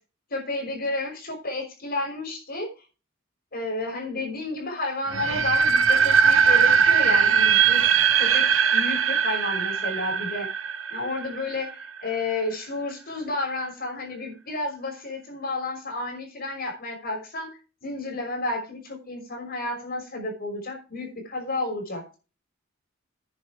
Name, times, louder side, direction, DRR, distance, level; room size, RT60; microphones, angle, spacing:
voice 1, 0.3-2.7 3.5-7.8 8.2-10.5 10.9-22.2, left 2 dB, 50° left, 2 dB, 5.8 m, -31 dB
sound 1, 5.1-12.0, right 6 dB, 75° right, 1.1 m, -20 dB
9.8 x 8.4 x 4.8 m, 0.32 s
head